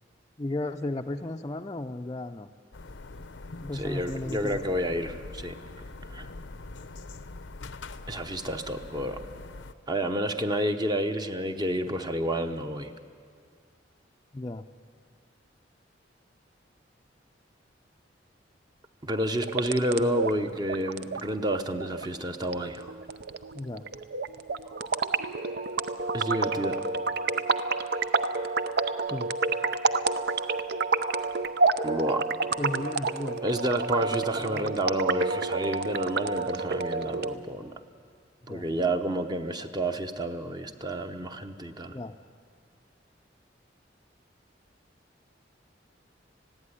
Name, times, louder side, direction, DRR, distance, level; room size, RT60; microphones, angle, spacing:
voice 1, 0.4-2.5 3.6-4.6 14.3-14.6 23.5-23.8 29.1-29.3 32.6-33.4 34.3-34.8 38.5-38.6 41.9-42.2, left 2 dB, 25° left, 3 dB, 0.5 m, -34 dB
sound 1, 2.7-9.7, left 3 dB, 75° left, 0.7 m, -43 dB
voice 2, 3.7-5.5 6.1-6.3 8.1-9.2 9.9-12.9 19.0-22.9 26.1-26.8 31.8-32.2 33.4-37.7 38.5-41.9, right 1 dB, 25° right, 7 dB, 0.9 m, -30 dB
sound 2, 19.3-37.3, right 4 dB, 60° right, 0.7 m, -29 dB
20.0 x 15.5 x 9.8 m, 2.1 s
head